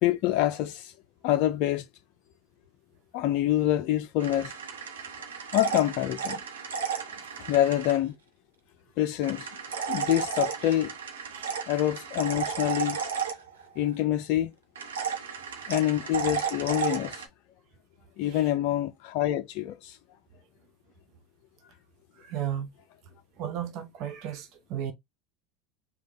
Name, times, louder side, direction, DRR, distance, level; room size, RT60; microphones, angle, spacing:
voice 1, 0.0-0.9 1.2-1.9 3.1-4.5 5.5-6.4 7.4-8.1 9.0-10.9 11.7-13.0 13.8-14.5 15.7-17.3 18.2-20.0, left 13 dB, 60° left, 0.4 m, -26 dB
sound 1, 4.2-8.0 9.2-13.9 14.8-17.3, right 6 dB, 85° right, 0.9 m, -33 dB
voice 2, 22.2-22.7 23.4-24.9, right 10 dB, 55° right, 0.7 m, -34 dB
3.4 x 2.2 x 4.0 m
hypercardioid pair, 85°, 0 cm